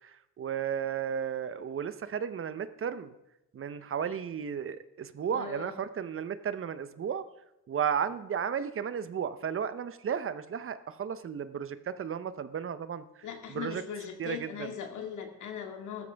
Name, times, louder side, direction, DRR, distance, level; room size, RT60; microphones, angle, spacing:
voice 1, 0.0-3.1 3.5-7.2 7.7-13.8 14.2-14.7, right 8 dB, 45° right, 13 dB, 0.8 m, -34 dB
voice 2, 5.3-5.7 13.2-16.1, left 7 dB, 80° left, 4 dB, 2.1 m, -39 dB
15.0 x 13.0 x 3.5 m, 0.90 s
cardioid pair, 90°, 30 cm